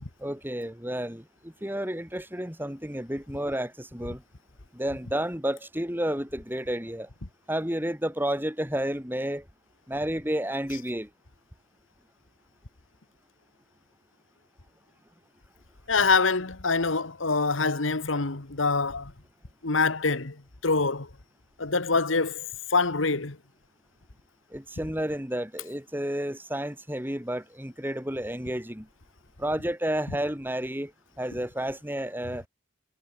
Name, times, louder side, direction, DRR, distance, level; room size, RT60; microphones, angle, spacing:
voice 1, 0.2-4.2 4.7-7.1 7.5-9.5 9.9-11.1 24.5-28.9 29.4-30.9 31.2-32.4, right 1 dB, 10° right, 3.9 m, -31 dB
voice 2, 15.9-19.1 19.6-20.4 20.6-21.1 21.6-23.4, left 4 dB, 85° left, 1.7 m, -25 dB
head